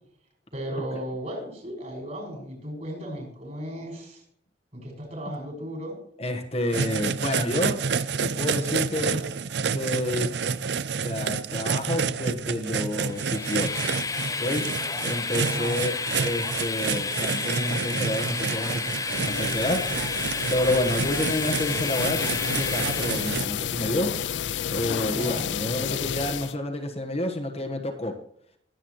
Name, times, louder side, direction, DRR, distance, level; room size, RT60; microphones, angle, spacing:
voice 1, 0.5-4.2 4.7-6.0 8.9-9.3 15.3-15.8 25.1-25.5, right 1 dB, 40° right, 0 dB, 5.9 m, -35 dB
voice 2, 6.2-7.8 8.2-9.2 9.6-10.3 11.0-13.8 14.4-14.7 15.0-20.2 20.5-24.1 24.7-28.1, left 1 dB, 35° left, 3 dB, 1.4 m, -29 dB
sound 1, 6.7-23.4, right 5 dB, 65° right, 0.5 m, -29 dB
Train, 13.1-23.5, left 4 dB, 20° left, 0.6 m, -31 dB
sound 2, 19.1-26.5, left 8 dB, 75° left, 0.4 m, -31 dB
21.0 x 8.2 x 3.2 m, 0.68 s
head